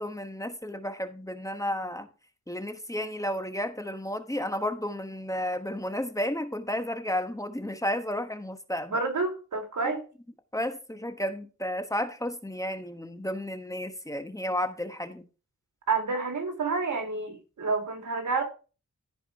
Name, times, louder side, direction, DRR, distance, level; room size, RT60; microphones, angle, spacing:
voice 1, 0.0-2.1 2.5-9.0 9.8-9.9 10.5-15.3, left 1 dB, 10° left, 1.2 m, -32 dB
voice 2, 8.9-10.0 15.9-18.4, right 4 dB, 90° right, 2.3 m, -29 dB
14.5 x 4.8 x 4.6 m
wide cardioid pair, 90°, 29 cm